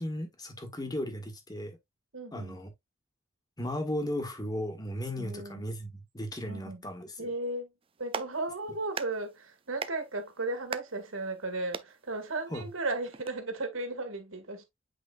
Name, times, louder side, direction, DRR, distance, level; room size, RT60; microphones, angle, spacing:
voice 1, 0.0-1.8 2.3-2.7 3.6-7.3 12.5-12.6, left 1 dB, 20° left, 1.7 m, -36 dB
voice 2, 2.1-2.6 5.2-5.6 6.5-6.8 7.2-7.7 8.0-14.6, right 2 dB, 75° right, 2.0 m, -35 dB
Clapping, 7.8-13.3, right 5 dB, 25° right, 0.5 m, -43 dB
8.3 x 5.0 x 2.4 m
head